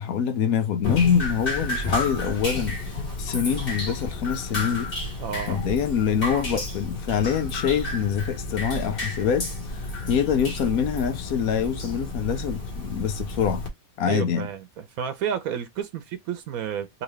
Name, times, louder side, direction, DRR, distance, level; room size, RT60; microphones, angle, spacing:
voice 1, 0.0-2.8 3.2-4.9 5.5-9.5 9.7-13.6 14.0-14.5, left 7 dB, 80° left, 1.2 m, -25 dB
Drip, 0.8-13.7, left 2 dB, 40° left, 1.6 m, -31 dB
voice 2, 5.2-5.6 14.1-17.0, right 8 dB, 80° right, 1.1 m, -31 dB
3.7 x 2.9 x 3.1 m
omnidirectional pair, 1.5 m